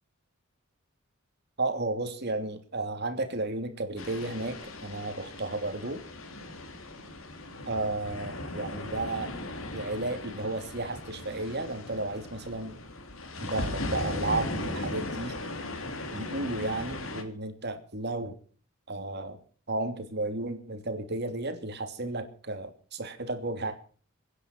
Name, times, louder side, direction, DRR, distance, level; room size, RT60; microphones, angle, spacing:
voice 1, 1.6-6.0 7.7-9.3 9.7-12.8 13.4-15.3 16.1-18.3 18.9-19.4 19.7-23.7, right 2 dB, 55° right, 7 dB, 2.8 m, -33 dB
sound 1, 4.0-17.2, left 2 dB, 90° left, 3.4 m, -38 dB
24.0 x 10.0 x 5.9 m, 0.43 s
head